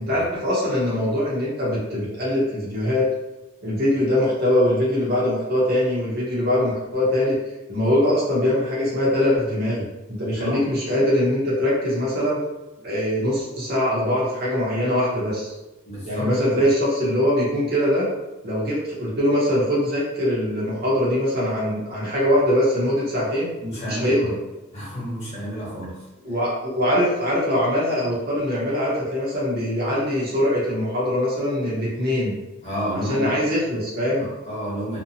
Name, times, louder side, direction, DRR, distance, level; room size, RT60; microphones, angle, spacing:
voice 1, 0.0-3.1 3.6-7.4 7.7-12.4 12.8-15.5 16.1-18.1 18.4-23.5 23.8-24.3 26.2-32.4 33.1-34.3, left 1 dB, 45° right, -7 dB, 0.8 m, -22 dB
voice 2, 10.3-10.6 15.8-16.7 23.6-24.3 24.7-26.3 32.6-33.4 34.2-35.0, equal, 30° left, -8 dB, 1.0 m, -31 dB
2.6 x 2.1 x 2.7 m, 1.0 s
head